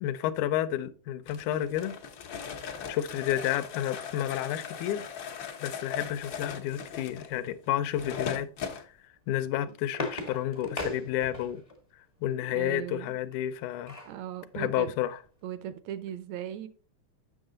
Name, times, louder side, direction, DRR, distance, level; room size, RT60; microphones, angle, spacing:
voice 1, 0.0-2.0 2.9-5.1 5.6-8.5 9.3-11.6 12.2-14.0 14.5-15.2, left 12 dB, 80° left, 2.0 m, -30 dB
sound 1, 1.3-8.8, left 7 dB, 65° left, 1.2 m, -39 dB
sound 2, 9.3-11.8 13.3-14.2 14.7-14.8 15.1-15.3, left 1 dB, 35° left, 0.5 m, -38 dB
voice 2, 12.5-13.2 14.1-14.9 15.4-16.7, right 10 dB, 75° right, 1.7 m, -38 dB
8.0 x 6.5 x 3.8 m
omnidirectional pair, 3.6 m